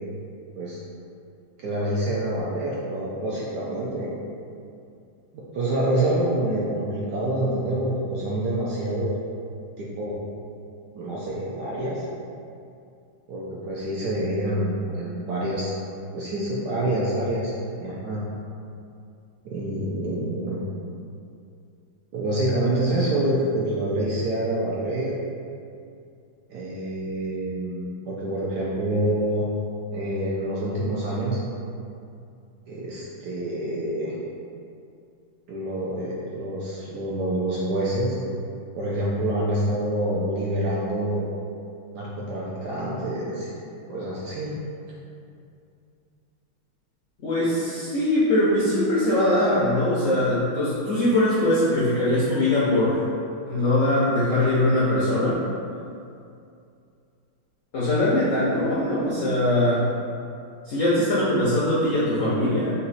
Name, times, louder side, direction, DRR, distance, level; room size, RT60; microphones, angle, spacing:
voice 1, 1.6-4.1 5.3-9.2 9.8-10.2 10.9-12.0 13.3-15.8 16.1-17.5 17.8-18.2 19.4-20.6 22.1-25.1 26.5-29.5 29.9-31.4 32.7-34.2 35.5-38.2 38.8-41.4 41.9-43.5 43.9-44.5 61.2-61.3, right 1 dB, 70° right, -6 dB, 1.0 m, -27 dB
voice 2, 47.2-53.1 53.4-55.4 57.7-59.9 60.6-62.7, left 1 dB, 70° left, -9 dB, 0.7 m, -21 dB
4.2 x 2.7 x 4.0 m, 2.5 s
omnidirectional pair, 2.3 m